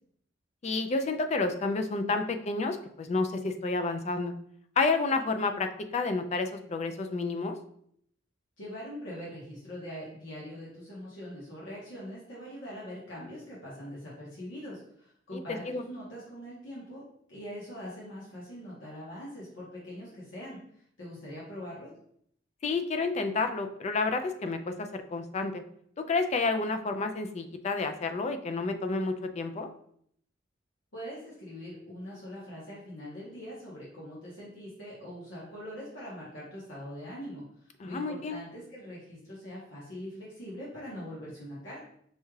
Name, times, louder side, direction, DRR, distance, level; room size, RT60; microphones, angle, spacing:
voice 1, 0.6-4.3 4.8-7.6 15.3-15.4 15.7-15.8 22.6-25.6 26.1-29.7 37.8-38.4, left 3 dB, 35° left, 7 dB, 0.3 m, -30 dB
voice 2, 8.6-20.6 21.0-21.9 30.9-41.8, equal, 90° left, -7 dB, 1.2 m, -42 dB
5.4 x 2.4 x 3.1 m, 0.68 s
head